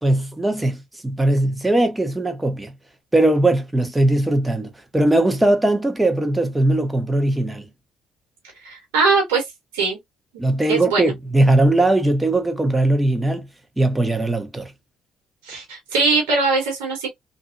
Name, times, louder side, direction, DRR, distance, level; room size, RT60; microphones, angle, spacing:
voice 1, 0.0-2.7 3.1-7.7 10.4-13.5 13.8-14.7, right 1 dB, 15° right, 1.0 m, -19 dB
voice 2, 8.6-9.4 9.7-10.0 10.7-11.1 15.4-17.1, right 4 dB, 85° right, 1.4 m, -21 dB
2.7 x 2.6 x 2.5 m
hypercardioid pair, 55°, 0 cm